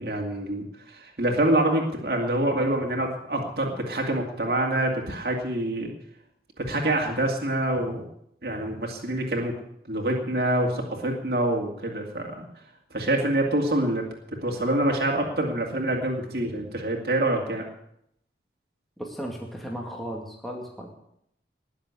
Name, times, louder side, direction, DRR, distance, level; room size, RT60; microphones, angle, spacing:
voice 1, 0.0-5.9 6.6-8.1 8.4-9.6 9.9-12.5 12.9-14.0 14.4-17.6, right 1 dB, 60° right, 0 dB, 2.4 m, -26 dB
voice 2, 19.0-20.9, equal, ahead, -1 dB, 2.2 m, -35 dB
19.5 x 7.3 x 8.3 m, 0.74 s
head